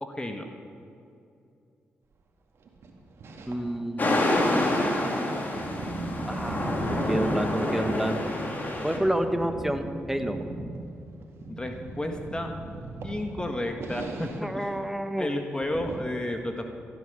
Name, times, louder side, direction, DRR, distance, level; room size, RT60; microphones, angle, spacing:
voice 1, 0.0-0.4 11.5-12.5 13.0-14.9 15.2-16.7, left 1 dB, 20° left, 4 dB, 1.6 m, -32 dB
sound 1, 2.7-3.8 4.2-8.4 8.7-14.5 14.7-14.8 15.2-15.3 15.6-16.0, right 2 dB, 65° right, 2.1 m, -37 dB
voice 2, 3.5-4.3 6.3-6.8 7.1-8.2 8.8-10.4 14.4-15.3, right 1 dB, 5° right, 7 dB, 1.4 m, -29 dB
sound 2, 4.0-9.0, left 1 dB, 40° left, 3.1 m, -27 dB
15.5 x 10.0 x 6.9 m, 2.5 s
supercardioid pair, 50°, 5 cm